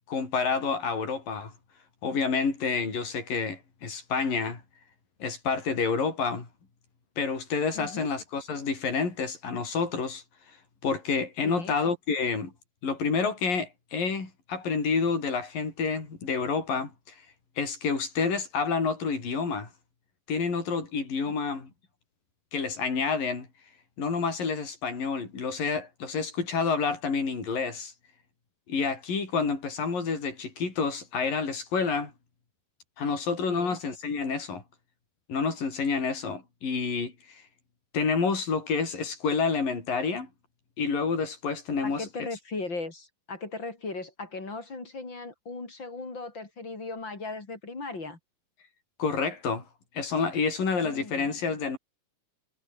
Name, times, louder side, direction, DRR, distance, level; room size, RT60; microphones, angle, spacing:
voice 1, 0.1-1.5 2.0-4.6 5.2-6.5 7.2-10.2 10.8-12.5 12.8-16.9 17.6-19.7 20.3-21.7 22.5-23.5 24.0-27.9 28.7-32.1 33.0-34.6 35.3-37.4 37.9-40.3 40.8-42.1 49.0-49.6 49.9-51.8, left 5 dB, 75° left, 7.7 m, -29 dB
voice 2, 7.7-8.1 11.4-11.8 21.3-21.4 33.5-33.8 41.8-48.2 50.8-51.4, left 3 dB, 30° left, 5.3 m, -38 dB
omnidirectional pair, 4.0 m